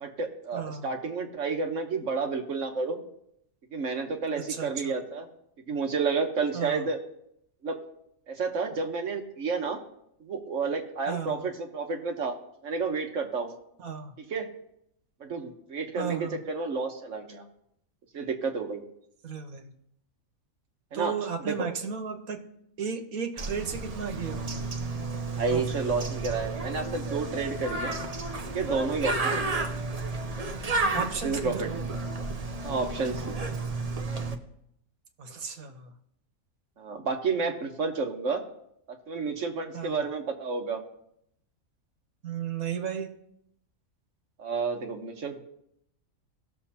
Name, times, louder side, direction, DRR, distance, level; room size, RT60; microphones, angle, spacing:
voice 1, 0.0-3.0 3.7-5.3 5.7-7.0 7.6-7.8 8.3-9.8 10.2-12.4 12.6-13.5 14.2-14.5 15.2-17.4 18.1-18.8 20.9-21.2 21.5-21.7 25.4-28.0 28.5-29.7 31.2-31.7 32.6-33.4 36.8-38.4 39.1-40.8 44.4-45.4, right 4 dB, 60° right, 4 dB, 1.4 m, -30 dB
voice 2, 0.5-0.9 4.5-4.9 6.5-6.8 11.1-11.5 13.8-14.1 16.0-16.4 19.2-19.7 20.9-22.5 22.8-24.7 25.5-25.8 30.9-31.7 35.2-35.9 39.7-40.0 42.2-43.1, right 6 dB, 85° right, 6 dB, 1.5 m, -34 dB
Bird, 23.4-34.4, right 3 dB, 35° right, 0.7 m, -32 dB
18.0 x 6.7 x 2.8 m, 0.75 s
omnidirectional pair, 1.5 m